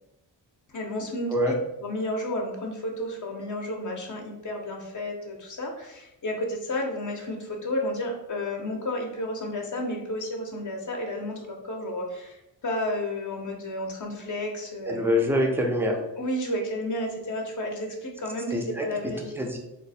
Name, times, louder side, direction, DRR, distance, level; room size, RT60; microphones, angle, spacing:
voice 1, 0.7-1.5 1.8-15.0 16.2-19.4, left 1 dB, 40° left, 1 dB, 0.7 m, -32 dB
voice 2, 14.9-16.0 18.5-18.8 19.4-19.6, left 1 dB, 5° right, 1 dB, 0.4 m, -24 dB
3.0 x 2.0 x 4.0 m, 0.89 s
cardioid pair, 120°, 45 cm